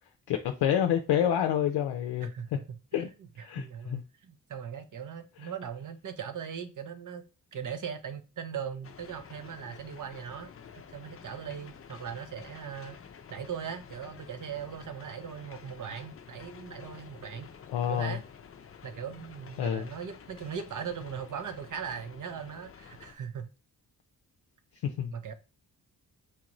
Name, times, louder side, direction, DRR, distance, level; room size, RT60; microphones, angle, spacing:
voice 1, 0.3-2.3 2.9-3.1 3.4-4.0 17.7-18.2 19.6-19.9 24.8-25.1, left 10 dB, 80° left, 0.5 m, -28 dB
voice 2, 2.2-7.2 7.5-13.0 13.3-17.5 17.9-18.2 18.8-23.5 25.1-25.3, right 7 dB, 50° right, 0.7 m, -39 dB
sound 1, 8.8-23.1, left 7 dB, 35° left, 0.5 m, -50 dB
4.5 x 2.5 x 3.0 m
cardioid pair, 60°, 39 cm